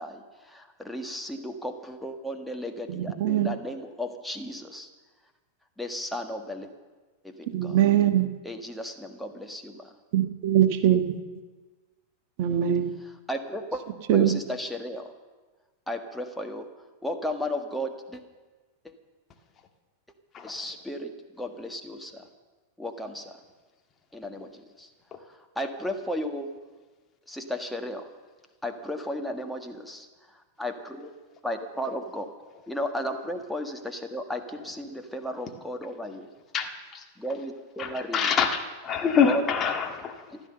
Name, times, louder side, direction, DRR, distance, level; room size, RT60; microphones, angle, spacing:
voice 1, 0.0-4.9 5.8-6.7 7.2-7.8 8.4-9.9 13.3-13.8 14.1-15.1 15.9-16.7 17.0-18.2 18.8-18.9 20.4-22.2 22.8-23.4 24.1-24.9 25.2-26.5 27.3-28.1 28.6-30.1 30.6-31.1 31.4-32.3 32.7-36.3 37.2-38.3 39.2-39.4 40.3-40.4, left 1 dB, ahead, 4 dB, 1.6 m, -34 dB
voice 2, 2.9-3.5 7.5-8.3 10.1-11.2 12.4-12.9 14.1-14.3, right 10 dB, 45° right, 8 dB, 1.3 m, -22 dB
voice 3, 36.5-37.0 37.8-40.3, left 6 dB, 25° left, 3 dB, 1.8 m, -26 dB
15.0 x 12.5 x 6.7 m, 1.3 s
figure-of-eight pair, 90°, 0 cm